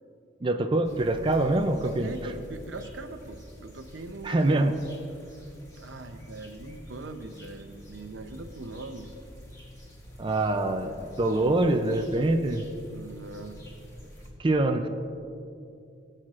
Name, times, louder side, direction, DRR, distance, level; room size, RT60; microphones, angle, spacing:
voice 1, 0.4-2.1 4.2-4.7 10.2-12.7 14.4-14.9, right 2 dB, 25° right, 5 dB, 0.4 m, -24 dB
sound 1, 0.8-14.3, equal, 20° left, 2.2 m, -47 dB
voice 2, 1.8-4.8 5.7-9.1 12.9-13.6, right 2 dB, 80° right, 7 dB, 0.7 m, -41 dB
19.0 x 7.7 x 2.5 m, 2.6 s
head